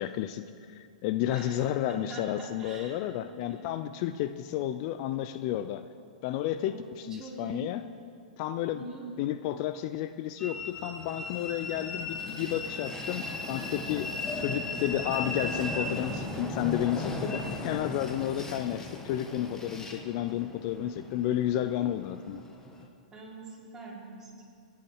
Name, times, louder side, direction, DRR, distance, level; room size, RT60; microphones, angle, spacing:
voice 1, 0.0-5.9 6.2-7.8 8.4-8.8 9.2-14.1 14.4-22.4, left 12 dB, 45° left, 11 dB, 0.5 m, -32 dB
voice 2, 1.3-3.6 6.6-7.7 8.7-9.1 23.1-24.5, right 3 dB, 15° right, -5 dB, 4.2 m, -43 dB
Train, 10.4-22.8, left 2 dB, 15° left, 1.5 m, -37 dB
22.5 x 10.5 x 4.8 m, 2.4 s
hypercardioid pair, 125°, 4 cm